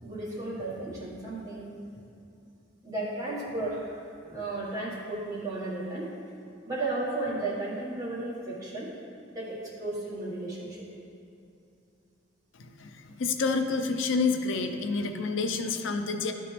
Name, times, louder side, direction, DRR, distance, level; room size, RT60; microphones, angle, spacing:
voice 1, 0.0-1.7 2.8-4.0 4.3-6.1 6.7-8.9 9.3-10.8, right 2 dB, 20° right, -7 dB, 1.6 m, -34 dB
voice 2, 12.6-16.3, left 4 dB, 75° left, 6 dB, 0.5 m, -28 dB
12.0 x 4.3 x 3.4 m, 2.6 s
head